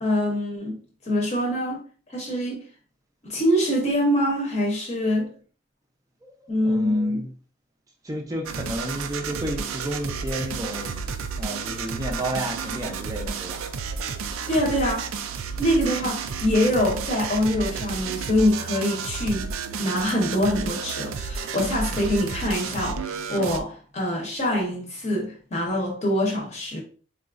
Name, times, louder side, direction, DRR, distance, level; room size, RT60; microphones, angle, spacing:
voice 1, 0.0-1.8 2.1-2.6 3.2-5.3 6.5-7.2 14.5-15.1 15.6-19.5 19.8-26.8, equal, 35° left, 0.8 m, -24 dB
voice 2, 6.2-7.3 8.0-11.0 11.4-13.6, right 1 dB, 15° right, 0.5 m, -32 dB
sound 1, 8.5-23.6, right 5 dB, 85° right, 0.4 m, -32 dB
4.0 x 2.4 x 2.4 m
head